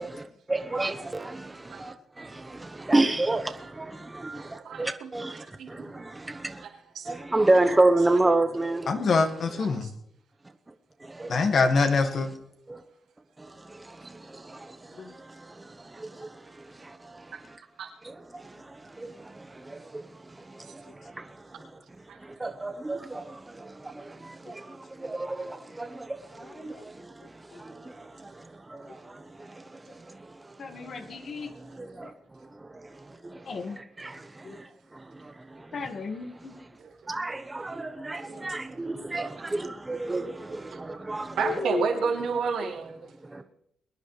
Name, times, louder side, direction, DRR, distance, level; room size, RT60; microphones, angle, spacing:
voice 1, 0.0-6.7 7.1-9.1 11.0-11.4 12.7-12.8 13.4-17.6 18.0-21.8 22.2-36.7 37.1-41.5, right 2 dB, 20° right, 1.1 m, -31 dB
voice 2, 4.6-5.1 5.6-6.0 6.6-6.7 6.9-7.1 9.6-9.7 17.3-17.4 17.8-17.9 22.1-22.2 36.8-36.9 38.2-38.4 41.4-43.1, right 6 dB, 85° right, 3.3 m, -30 dB
voice 3, 8.9-9.9 11.3-12.3 15.0-15.1 26.4-26.8 27.5-27.6 30.6-31.5 32.0-32.1 33.5-33.8 34.4-34.6 35.7-36.5 41.4-41.8, left 4 dB, 55° left, 1.9 m, -27 dB
23.0 x 10.5 x 3.4 m
cardioid pair, 90°, 0 cm